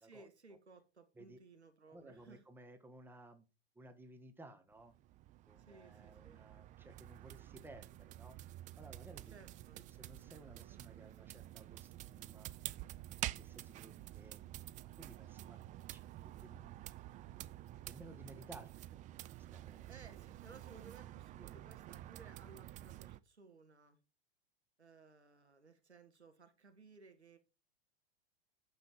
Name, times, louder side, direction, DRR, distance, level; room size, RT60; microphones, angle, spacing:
voice 1, 0.0-2.4 5.6-6.4 9.3-9.8 19.9-24.0 24.8-27.4, right 4 dB, 90° right, 1.9 m, -60 dB
voice 2, 1.9-3.4 3.7-4.9 5.5-8.4 8.8-9.3 9.8-12.5 13.2-14.4 14.9-15.6 15.9-16.9 17.9-19.1 19.4-19.9 21.4-21.5, right 1 dB, 5° right, 1.4 m, -57 dB
sound 1, 4.7-23.2, right 15 dB, 25° right, 0.5 m, -49 dB
9.4 x 6.9 x 4.5 m
figure-of-eight pair, 95°, 32 cm